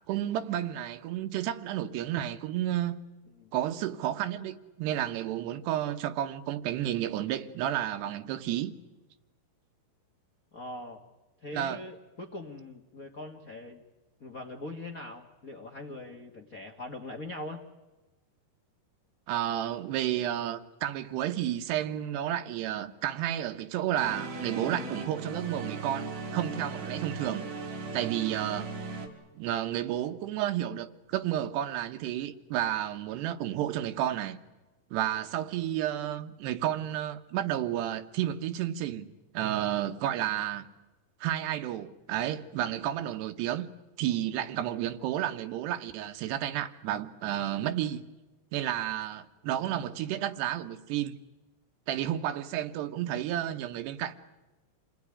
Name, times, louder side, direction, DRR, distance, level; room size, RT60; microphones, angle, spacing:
voice 1, 0.1-3.0 3.5-8.8 11.5-11.8 19.3-27.5 27.9-28.7 29.4-34.4 34.9-39.1 39.3-40.7 41.2-43.7 44.0-48.1 48.5-51.2 51.9-54.1, right 12 dB, 85° right, 3.2 m, -31 dB
voice 2, 10.5-11.0 11.4-13.8 14.2-17.6, left 2 dB, 75° left, 0.8 m, -41 dB
sound 1, 24.0-29.1, right 4 dB, 65° right, 4.6 m, -38 dB
28.0 x 18.5 x 9.8 m
omnidirectional pair, 4.7 m